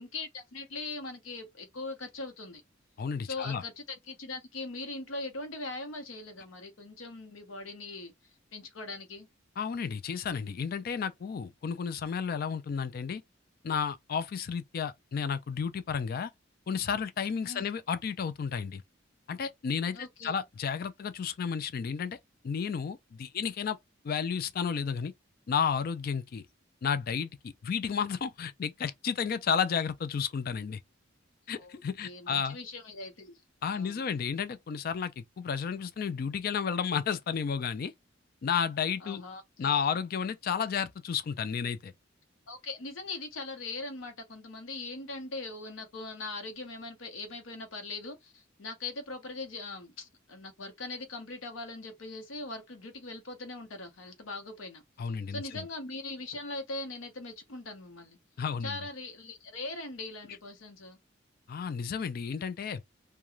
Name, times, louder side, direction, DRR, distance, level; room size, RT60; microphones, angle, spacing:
voice 1, 0.0-2.6 3.3-8.1 8.5-9.3 17.4-17.7 19.9-20.4 31.6-33.4 33.7-34.1 39.0-39.7 42.5-54.8 55.3-58.2 58.6-61.0, left 2 dB, 80° left, 0.9 m, -41 dB
voice 2, 3.0-3.6 9.6-13.2 13.6-16.3 16.7-18.8 19.3-22.2 22.4-23.8 24.0-25.1 25.5-26.4 26.8-30.8 31.5-32.6 33.6-37.9 38.4-39.2 39.6-41.9 55.0-55.4 58.4-58.8 61.5-62.8, left 6 dB, 50° left, 0.3 m, -32 dB
2.4 x 2.2 x 3.0 m
head